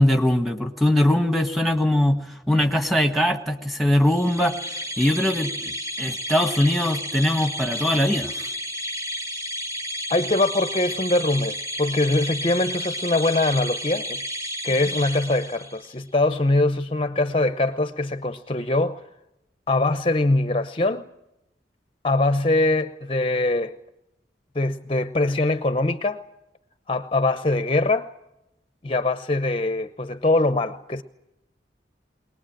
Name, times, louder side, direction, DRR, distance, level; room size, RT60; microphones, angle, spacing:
voice 1, 0.0-4.5 5.0-5.7 6.0-8.5, left 1 dB, ahead, 1.6 m, -21 dB
sound 1, 4.1-15.9, equal, 20° right, 2.4 m, -32 dB
voice 2, 10.1-14.2 14.6-19.0 19.7-21.1 22.0-23.7 24.5-26.2 26.9-28.1 28.8-31.0, left 2 dB, 30° left, 0.7 m, -22 dB
22.0 x 19.5 x 8.9 m
head